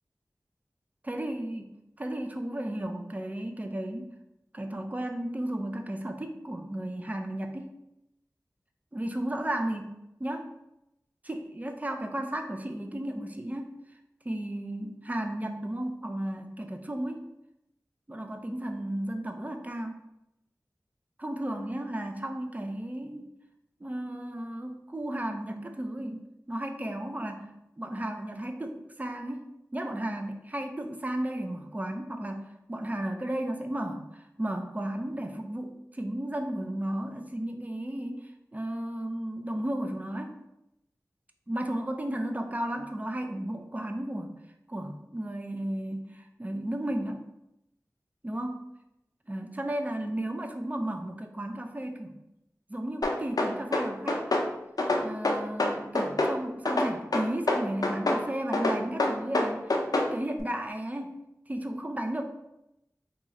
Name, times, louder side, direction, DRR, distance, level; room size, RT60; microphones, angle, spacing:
voice 1, 1.0-4.1 4.5-7.7 8.9-10.5 11.2-13.7 14.2-17.3 18.1-20.0 21.2-23.3 23.8-27.5 27.8-29.5 29.7-38.2 38.5-40.4 41.5-44.3 44.7-47.2 48.2-48.7 49.3-52.2 52.7-54.3 55.0-61.2 61.5-62.2, right 1 dB, 25° right, 5 dB, 0.4 m, -34 dB
sound 1, 53.0-54.5 54.8-56.4 56.7-58.2 58.5-60.1, left 2 dB, 70° left, 0.5 m, -26 dB
2.9 x 2.4 x 4.0 m, 0.86 s
wide cardioid pair, 55°, 7 cm